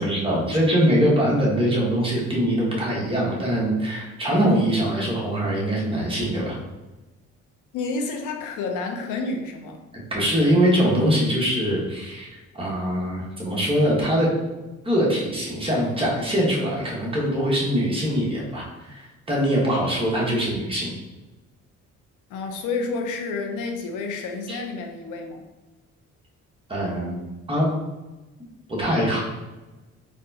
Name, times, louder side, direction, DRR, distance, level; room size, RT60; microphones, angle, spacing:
voice 1, 0.0-6.6 10.1-12.3 12.5-14.3 14.8-20.9 24.5-24.6 26.7-27.2 27.5-27.7 28.7-29.2, equal, 20° right, -4 dB, 1.2 m, -22 dB
voice 2, 7.7-9.8 22.3-25.4, left 4 dB, 90° left, 3 dB, 0.6 m, -30 dB
4.0 x 2.3 x 2.7 m, 1.1 s
cardioid pair, 90°, 30 cm